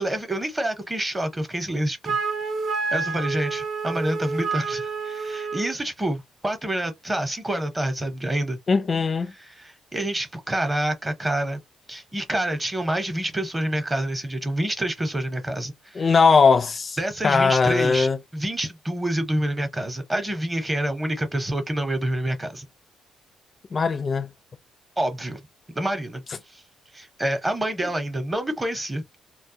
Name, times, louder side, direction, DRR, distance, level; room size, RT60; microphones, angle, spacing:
voice 1, 0.0-2.2 2.9-8.6 9.3-11.6 11.9-16.1 17.0-22.7 25.0-25.4 25.7-26.2 26.5-26.6 26.9-29.2, right 1 dB, 20° right, 0.8 m, -27 dB
Wind instrument woodwind instrument, 2.0-5.8, right 4 dB, 55° right, 0.6 m, -28 dB
voice 2, 8.7-9.3 16.0-17.0 17.2-18.2 23.7-24.3, left 5 dB, 40° left, 0.4 m, -19 dB
2.2 x 2.0 x 2.7 m
cardioid pair, 90°, 0 cm